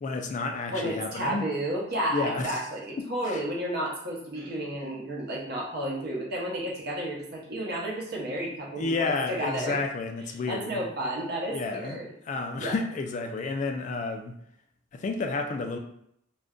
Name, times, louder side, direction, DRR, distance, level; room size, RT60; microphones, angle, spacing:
voice 1, 0.0-1.5 2.1-2.5 3.3-3.4 8.8-10.8 11.5-12.0 12.3-14.4 14.9-15.8, left 3 dB, 40° left, 4 dB, 0.3 m, -31 dB
voice 2, 0.7-9.8 10.5-12.1 12.6-12.7, right 1 dB, 55° right, -3 dB, 0.8 m, -32 dB
2.5 x 2.2 x 3.6 m, 0.72 s
head